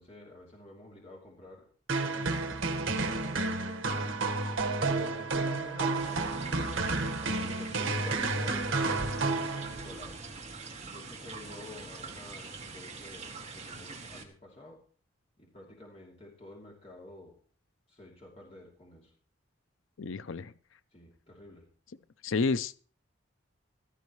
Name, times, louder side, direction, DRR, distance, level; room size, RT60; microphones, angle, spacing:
voice 1, 0.0-1.7 2.0-2.4 2.7-4.1 4.8-6.8 7.4-10.2 10.8-14.8 15.4-17.4 17.9-19.1 20.9-21.7, left 1 dB, 30° left, 2.9 m, -49 dB
sound 1, 1.9-10.0, right 3 dB, 75° right, 1.5 m, -31 dB
sound 2, 5.9-14.2, right 4 dB, 30° right, 2.0 m, -44 dB
voice 2, 20.0-20.5 22.2-22.8, left 4 dB, 75° left, 0.5 m, -30 dB
15.5 x 13.5 x 3.2 m
head